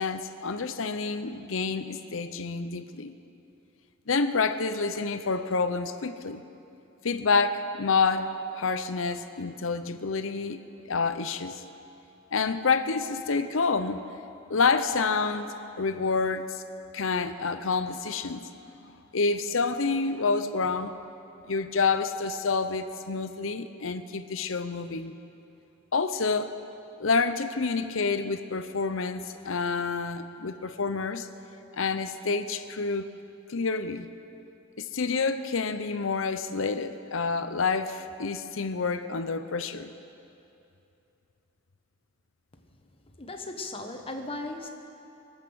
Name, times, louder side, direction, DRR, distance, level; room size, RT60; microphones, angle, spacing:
voice 1, 0.0-3.1 4.1-6.4 7.0-8.3 8.5-10.6 10.9-11.6 12.3-14.0 14.5-16.6 16.9-18.5 19.1-21.0 21.5-25.1 25.9-26.5 27.0-31.3 31.7-33.1 33.5-34.1 34.8-39.9, left 4 dB, 80° left, 10 dB, 0.7 m, -28 dB
voice 2, 43.2-44.7, left 2 dB, 30° left, 4 dB, 1.2 m, -36 dB
23.0 x 8.2 x 6.4 m, 2.7 s
head